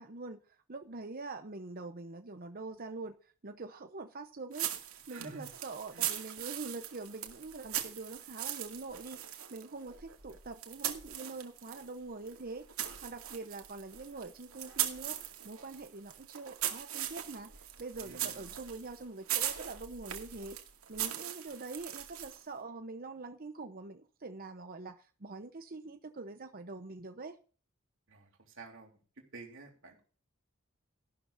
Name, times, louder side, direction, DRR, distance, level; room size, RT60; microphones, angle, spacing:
voice 1, 0.0-12.7 13.0-20.6 20.9-27.4, right 3 dB, 45° right, 0.9 m, -44 dB
sound 1, 4.5-11.9 12.3-22.5, right 11 dB, 80° right, 2.3 m, -40 dB
voice 2, 5.1-5.4 5.9-6.0 18.0-18.6 28.1-28.9 29.3-30.0, right 3 dB, 65° right, 3.2 m, -50 dB
14.5 x 12.0 x 2.7 m
head